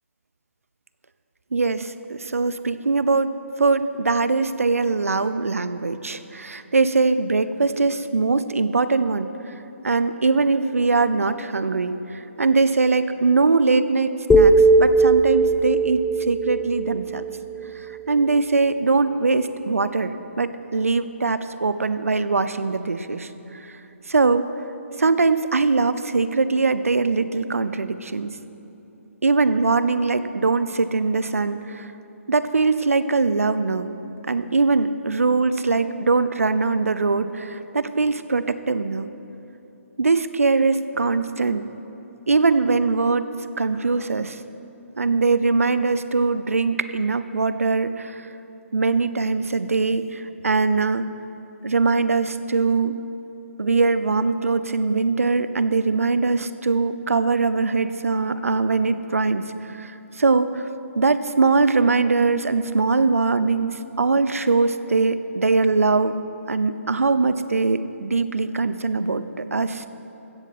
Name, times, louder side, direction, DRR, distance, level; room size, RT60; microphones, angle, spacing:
voice 1, 1.5-9.3 9.8-17.3 18.1-23.3 24.1-24.5 25.0-28.3 29.2-31.9 32.3-33.9 34.3-39.1 40.0-41.7 42.3-43.3 43.6-44.4 45.0-48.3 48.7-51.1 51.6-53.0 53.6-60.6 60.9-66.1 66.5-69.9, right 4 dB, 75° right, 13 dB, 0.7 m, -22 dB
sound 1, 14.3-18.4, right 2 dB, 5° left, 0.4 m, -19 dB
16.0 x 13.5 x 4.2 m, 3.0 s
figure-of-eight pair, 145°, 8 cm